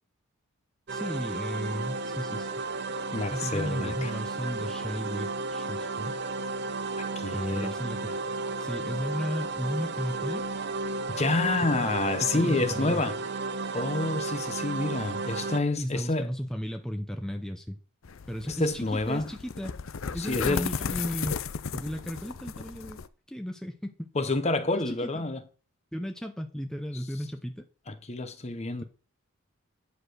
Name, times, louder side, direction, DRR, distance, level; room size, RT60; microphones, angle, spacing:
voice 1, 0.9-2.5 3.3-6.2 7.3-8.2 8.6-10.4 12.2-13.0 15.8-17.8 18.3-19.7 20.1-21.3 21.7-23.0 23.3-23.9 24.7-25.3 25.9-27.6, equal, 5° left, 0.7 m, -35 dB
sound 1, 0.9-15.6, right 3 dB, 50° right, 0.6 m, -33 dB
voice 2, 3.1-4.1 7.2-7.7 11.1-13.2 13.7-16.3 18.5-19.3 20.2-20.7 24.1-25.4 27.9-28.8, left 2 dB, 30° left, 0.9 m, -28 dB
sound 2, 18.0-23.1, left 6 dB, 70° left, 0.6 m, -35 dB
10.0 x 4.9 x 6.4 m
head